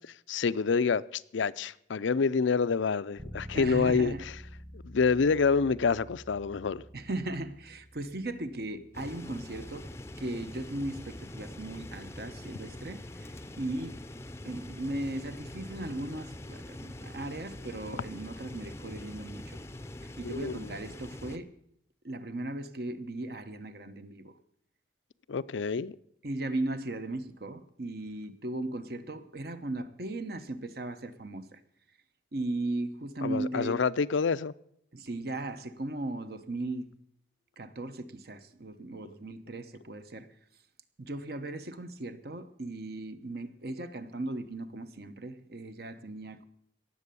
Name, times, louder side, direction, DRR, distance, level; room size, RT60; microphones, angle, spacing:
voice 1, 0.3-4.4 4.7-6.8 20.2-20.6 25.3-26.0 33.2-34.5, left 5 dB, 80° left, 0.5 m, -27 dB
Bass guitar, 3.2-13.0, equal, 25° right, 1.5 m, -50 dB
voice 2, 3.5-4.2 6.9-9.9 10.2-14.0 14.4-19.6 20.2-21.5 22.0-24.4 26.2-31.6 32.3-33.8 34.9-36.9 37.6-40.3 41.0-46.4, right 2 dB, 55° right, 0.9 m, -37 dB
sound 1, 8.9-21.4, left 1 dB, 15° left, 0.6 m, -44 dB
18.0 x 7.7 x 6.9 m
head